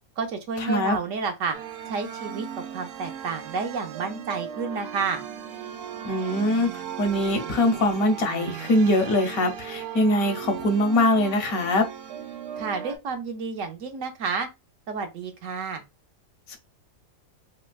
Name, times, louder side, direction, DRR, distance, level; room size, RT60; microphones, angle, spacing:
voice 1, 0.2-1.6 1.9-2.5 2.7-5.2 12.6-14.5 14.9-15.8, right 5 dB, 65° right, 1.0 m, -30 dB
sound 1, 1.5-13.0, right 9 dB, 85° right, 1.1 m, -37 dB
voice 2, 6.0-6.7 7.0-11.8 16.5-16.6, left 1 dB, 75° left, 1.2 m, -22 dB
4.2 x 2.0 x 2.2 m
omnidirectional pair, 1.5 m